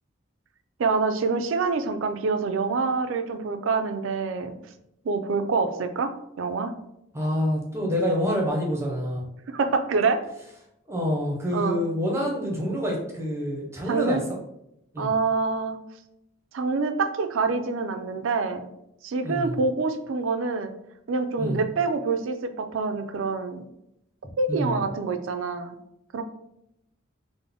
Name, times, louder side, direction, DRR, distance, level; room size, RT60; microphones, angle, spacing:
voice 1, 0.8-4.6 5.0-6.1 6.4-6.7 9.5-10.2 11.5-11.8 13.9-14.2 15.0-15.8 16.5-18.7 19.0-20.7 21.1-23.6 24.4-25.8 26.1-26.2, right 4 dB, 75° right, 8 dB, 0.4 m, -26 dB
voice 2, 7.1-9.2 10.9-14.2 14.9-15.1 19.2-19.6 21.4-21.6 24.5-24.8, equal, 15° right, -1 dB, 0.6 m, -27 dB
3.7 x 2.0 x 3.4 m, 0.81 s
head